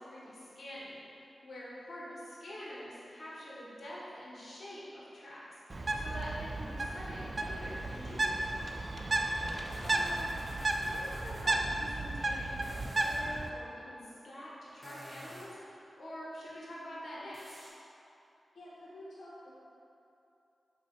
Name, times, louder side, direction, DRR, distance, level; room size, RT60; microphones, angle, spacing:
voice 1, 0.0-8.6 9.8-10.4 10.8-17.5, equal, 60° left, -7 dB, 1.1 m, -46 dB
Bird, 5.7-13.5, right 2 dB, 45° right, 0.3 m, -34 dB
sound 1, 7.3-11.5 12.5-13.3 14.7-15.7 17.3-17.7, equal, 10° right, 1.0 m, -52 dB
voice 2, 9.4-9.8 18.5-19.5, left 1 dB, 85° left, -10 dB, 0.8 m, -50 dB
3.9 x 2.7 x 4.3 m, 2.8 s
cardioid pair, 55°, 0 cm